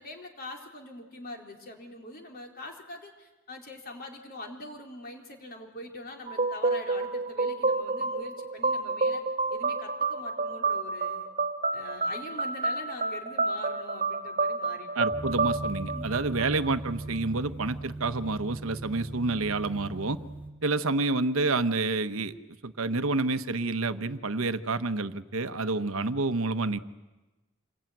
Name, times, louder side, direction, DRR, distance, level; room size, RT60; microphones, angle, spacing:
voice 1, 0.0-9.2 9.5-11.3 11.7-14.9 15.9-16.1 20.6-20.8 25.8-26.0, left 1 dB, 45° left, 2 dB, 3.9 m, -43 dB
sound 1, 6.3-16.9, right 3 dB, 35° right, 1.4 m, -29 dB
voice 2, 14.9-20.2 20.6-22.3 22.6-26.8, right 3 dB, 75° right, 11 dB, 1.0 m, -28 dB
sound 2, 15.1-20.5, right 2 dB, 10° left, 3.8 m, -39 dB
27.0 x 21.5 x 9.2 m, 1.1 s
head